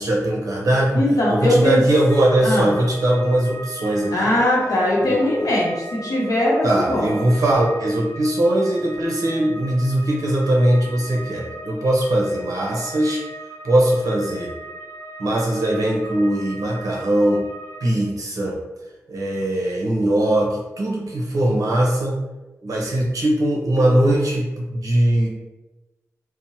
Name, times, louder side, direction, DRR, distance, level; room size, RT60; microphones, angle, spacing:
voice 1, 0.0-1.0 1.3-4.3 5.0-5.5 6.6-13.2 13.6-14.5 15.2-17.4 17.8-18.6 19.1-22.2 22.6-25.3, right 1 dB, 75° right, -2 dB, 0.7 m, -20 dB
voice 2, 0.9-1.8 2.4-2.7 4.1-7.1, left 1 dB, 75° left, -4 dB, 0.8 m, -20 dB
sound 1, 2.1-17.9, right 1 dB, 40° left, 0.6 m, -38 dB
2.7 x 2.0 x 2.8 m, 1.1 s
wide cardioid pair, 160°, 6 cm